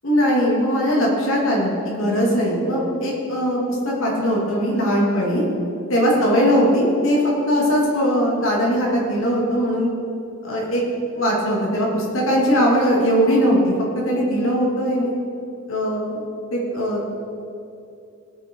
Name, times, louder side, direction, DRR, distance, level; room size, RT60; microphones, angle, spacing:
voice 1, 0.0-5.4 5.9-9.9 10.4-10.8 11.1-13.7 14.0-15.1 15.7-16.1 16.5-17.1, equal, 65° left, -3 dB, 2.8 m, -20 dB
17.5 x 6.6 x 4.7 m, 2.6 s
head